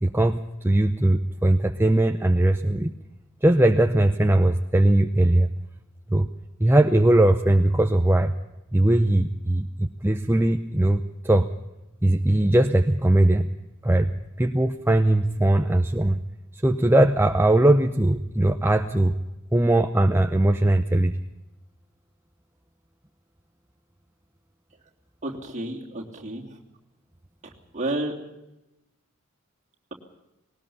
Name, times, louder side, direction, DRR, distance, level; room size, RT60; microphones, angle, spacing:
voice 1, 0.0-2.9 3.4-5.5 6.1-6.3 6.6-8.3 8.7-11.5 12.0-13.5 13.8-14.1 14.4-16.2 16.6-19.1 19.5-21.2, right 1 dB, 10° right, 5 dB, 0.7 m, -20 dB
voice 2, 25.2-26.4 27.7-28.1, right 1 dB, 35° right, 0 dB, 3.0 m, -30 dB
20.0 x 19.0 x 7.0 m, 0.95 s
head